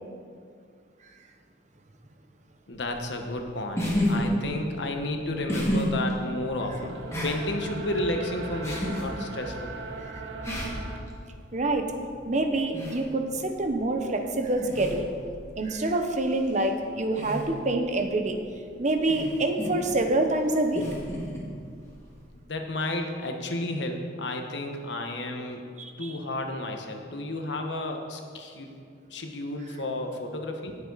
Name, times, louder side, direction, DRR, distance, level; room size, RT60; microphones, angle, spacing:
voice 1, 2.7-7.0 7.2-9.7 22.5-25.6 26.0-28.7 29.1-30.8, left 1 dB, 70° left, 4 dB, 1.3 m, -32 dB
sound 1, 2.7-22.4, equal, 15° left, 2.0 m, -34 dB
sound 2, 5.1-11.0, right 2 dB, 85° right, 1.2 m, -39 dB
voice 2, 11.5-11.9 12.3-15.1 15.6-18.4 18.8-20.9 25.8-26.2, right 2 dB, 40° right, 5 dB, 0.9 m, -26 dB
18.0 x 7.3 x 4.1 m, 2.2 s
head